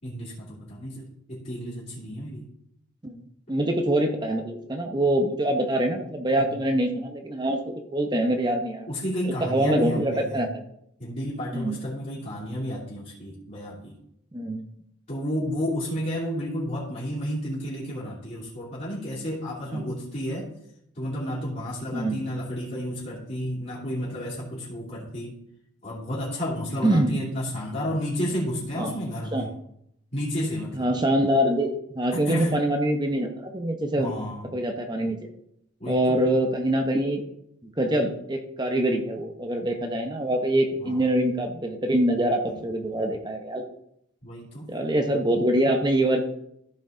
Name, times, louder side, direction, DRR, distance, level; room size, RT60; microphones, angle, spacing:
voice 1, 0.0-2.5 6.4-6.6 8.9-10.4 11.0-14.0 15.1-20.5 20.9-25.4 25.8-29.5 30.1-30.9 32.1-32.5 34.0-34.4 35.8-36.2 40.8-40.9 42.5-42.6 44.2-44.7, equal, 35° left, -10 dB, 2.8 m, -31 dB
voice 2, 3.0-8.9 9.4-10.6 11.5-11.8 14.3-14.6 19.7-19.8 21.9-22.2 26.8-27.2 28.7-28.9 29.3-29.5 30.7-34.1 34.5-35.2 35.8-37.2 37.6-43.6 44.7-46.2, right 1 dB, 20° right, 4 dB, 0.8 m, -24 dB
14.0 x 4.9 x 3.8 m, 0.77 s
head